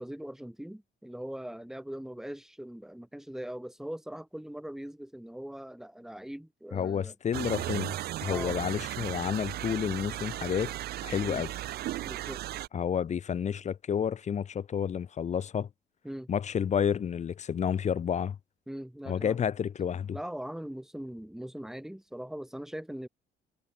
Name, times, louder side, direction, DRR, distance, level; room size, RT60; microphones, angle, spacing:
voice 1, 0.0-7.1 8.3-8.6 11.2-11.4 12.0-12.4 16.0-16.3 18.7-19.4 20.1-23.1, right 1 dB, 5° right, 4.3 m, -41 dB
voice 2, 6.7-7.9 8.2-10.7 11.0-11.5 12.7-15.7 16.3-18.4 19.1-20.2, left 8 dB, 45° left, 3.6 m, -30 dB
sound 1, 7.3-12.7, right 14 dB, 70° right, 1.4 m, -36 dB
cardioid pair, 110°, 17 cm